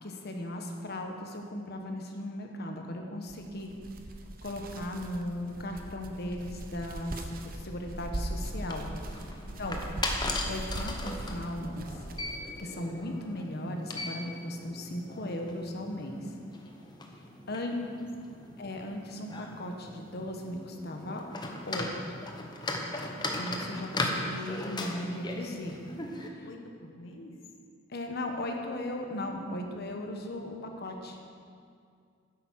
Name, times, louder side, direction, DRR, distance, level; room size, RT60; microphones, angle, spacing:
voice 1, 0.0-3.7 4.4-8.9 9.6-9.8 10.5-11.9 12.6-16.3 17.5-17.7 18.6-21.2 21.7-21.9 23.4-25.8 26.4-26.5 27.9-31.2, left 1 dB, 55° left, 3 dB, 1.2 m, -37 dB
sound 1, 3.3-12.6, right 1 dB, 45° right, 0.8 m, -40 dB
sound 2, 8.3-26.3, left 2 dB, 20° left, 1.0 m, -38 dB
voice 2, 9.4-9.8 17.6-18.0 18.3-18.6 26.4-27.4 30.4-30.5 30.7-31.2, left 1 dB, 75° left, 2 dB, 1.3 m, -50 dB
10.0 x 8.4 x 6.3 m, 2.3 s
head